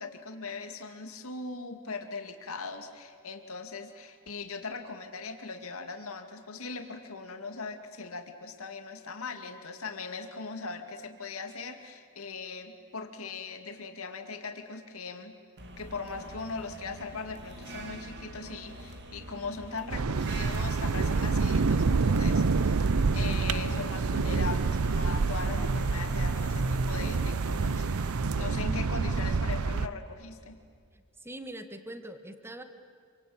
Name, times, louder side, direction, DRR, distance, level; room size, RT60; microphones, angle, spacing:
voice 1, 0.0-15.4 15.8-27.9 28.3-30.6, left 4 dB, 70° left, 6 dB, 2.3 m, -40 dB
sound 1, 15.6-29.8, right 2 dB, 50° right, 2.7 m, -44 dB
sound 2, 19.9-29.9, right 4 dB, 75° right, 0.6 m, -27 dB
voice 2, 30.9-32.6, right 1 dB, 10° right, 8 dB, 1.7 m, -43 dB
27.5 x 24.5 x 8.8 m, 2.2 s
head